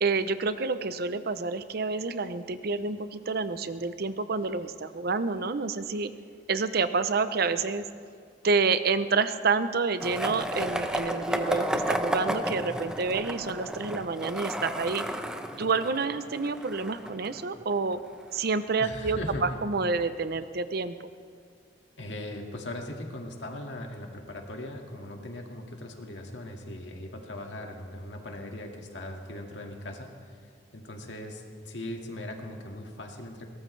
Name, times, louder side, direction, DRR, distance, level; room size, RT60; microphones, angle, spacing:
voice 1, 0.0-6.1 6.5-7.8 8.4-15.1 15.6-18.0 18.3-21.1, right 4 dB, 55° right, 12 dB, 0.7 m, -28 dB
Skateboard, 10.0-17.9, equal, 5° right, 0.8 m, -32 dB
voice 2, 18.8-19.6 22.0-30.3 30.7-33.5, left 1 dB, 75° left, 2 dB, 2.0 m, -39 dB
22.0 x 18.5 x 3.3 m, 2.2 s
head